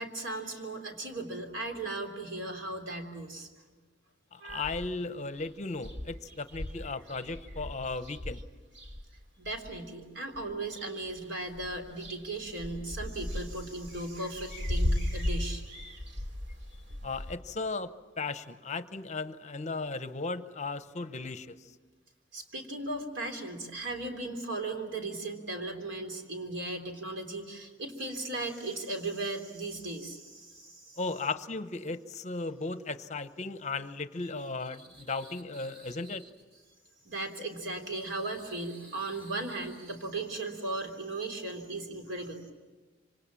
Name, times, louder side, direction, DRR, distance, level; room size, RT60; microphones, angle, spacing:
voice 1, 0.0-3.5 4.4-4.7 9.4-15.6 22.3-31.0 34.8-36.3 37.0-42.5, right 2 dB, 85° right, 4 dB, 3.4 m, -37 dB
voice 2, 4.3-8.4 17.0-17.9 18.2-21.7 31.0-36.3, left 3 dB, 40° left, 12 dB, 0.8 m, -36 dB
sound 1, 4.5-5.1 5.4-5.5 5.8-9.8 10.3-11.2 11.5-17.3, left 1 dB, 65° right, 2.7 m, -36 dB
26.5 x 25.5 x 7.5 m, 1.3 s
head